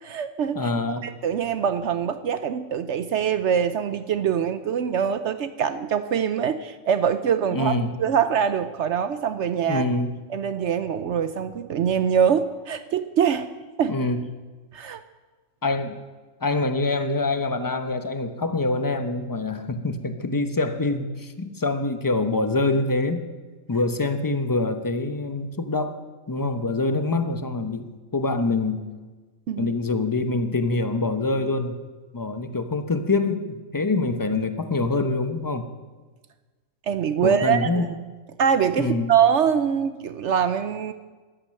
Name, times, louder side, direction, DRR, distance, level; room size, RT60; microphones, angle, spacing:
voice 1, 0.0-0.7 1.0-9.9 10.3-13.5 13.8-14.0 14.7-15.0 29.5-29.7 36.9-37.9 38.4-40.9, right 8 dB, 65° right, 11 dB, 0.9 m, -24 dB
voice 2, 0.5-1.1 7.5-7.9 9.7-10.1 13.9-14.2 15.6-16.0 16.4-23.2 23.7-26.0 26.3-28.8 29.6-31.8 32.1-35.7 37.2-37.9 38.8-39.1, left 2 dB, 20° left, 8 dB, 0.7 m, -25 dB
14.0 x 12.0 x 6.5 m, 1.3 s
omnidirectional pair, 1.4 m